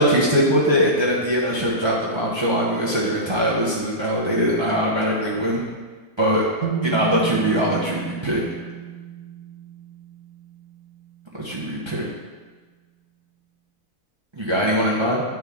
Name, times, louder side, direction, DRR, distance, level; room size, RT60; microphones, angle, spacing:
voice 1, 0.0-5.6 6.2-6.4 6.8-8.4 11.4-12.1 14.4-15.2, equal, 20° right, -5 dB, 0.9 m, -21 dB
sound 1, 6.6-10.6, right 7 dB, 75° right, 1.0 m, -31 dB
9.6 x 4.5 x 3.6 m, 1.4 s
omnidirectional pair, 1.5 m